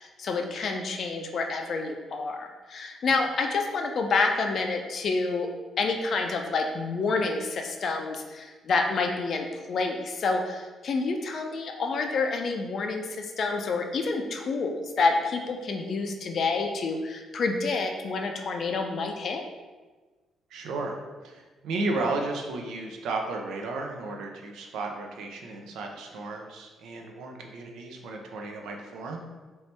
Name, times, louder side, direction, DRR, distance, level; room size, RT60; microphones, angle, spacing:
voice 1, 0.0-5.5 5.8-19.4, left 3 dB, 55° left, 4 dB, 0.4 m, -28 dB
voice 2, 20.5-21.0 21.2-29.3, right 3 dB, 80° right, 2 dB, 0.5 m, -33 dB
3.0 x 2.7 x 3.3 m, 1.3 s
cardioid pair, 90°, 0 cm